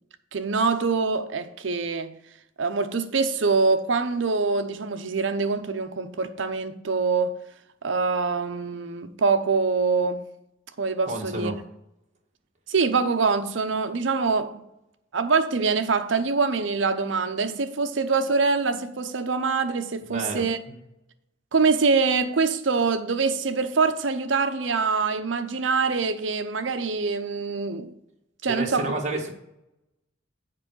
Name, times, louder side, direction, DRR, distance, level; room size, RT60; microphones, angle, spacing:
voice 1, 0.3-2.1 2.6-7.4 7.8-10.2 10.8-11.5 12.7-14.7 15.1-20.6 21.5-27.9 28.4-28.9, right 4 dB, 70° right, 0.7 m, -24 dB
voice 2, 11.0-11.6 20.1-20.8 28.5-29.3, right 2 dB, 40° right, 1.4 m, -31 dB
7.6 x 4.6 x 6.2 m
head